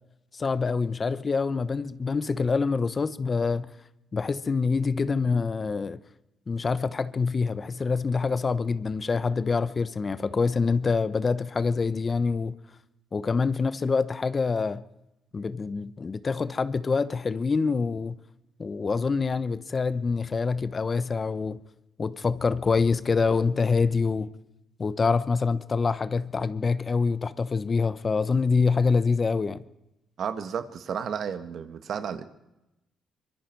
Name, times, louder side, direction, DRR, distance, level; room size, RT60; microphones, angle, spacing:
voice 1, 0.3-3.7 4.1-6.0 6.5-12.5 13.1-14.8 15.3-18.2 18.6-21.6 22.0-24.3 24.8-29.6, left 4 dB, 35° left, 0.9 m, -26 dB
voice 2, 30.2-32.2, right 7 dB, 60° right, 1.7 m, -32 dB
24.5 x 22.5 x 4.7 m
cardioid pair, 90°, 0 cm